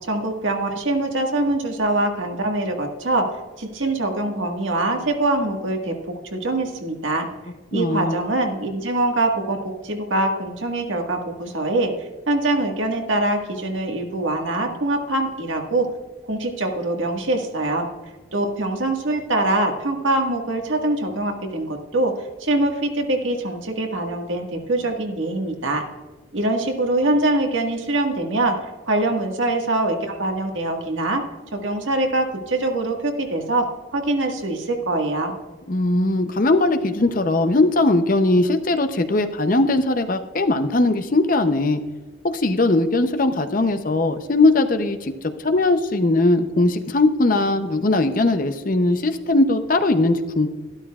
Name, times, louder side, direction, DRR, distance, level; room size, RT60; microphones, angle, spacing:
voice 1, 0.0-7.3 7.7-11.9 12.3-15.9 16.2-17.9 18.3-22.1 22.4-25.8 26.3-28.6 28.9-31.2 31.5-35.4, right 2 dB, 80° right, 3 dB, 1.6 m, -23 dB
voice 2, 7.7-8.2 35.7-41.8 42.3-45.1 45.4-50.5, left 2 dB, 45° left, 8 dB, 0.6 m, -19 dB
12.5 x 12.0 x 2.4 m, 1.3 s
head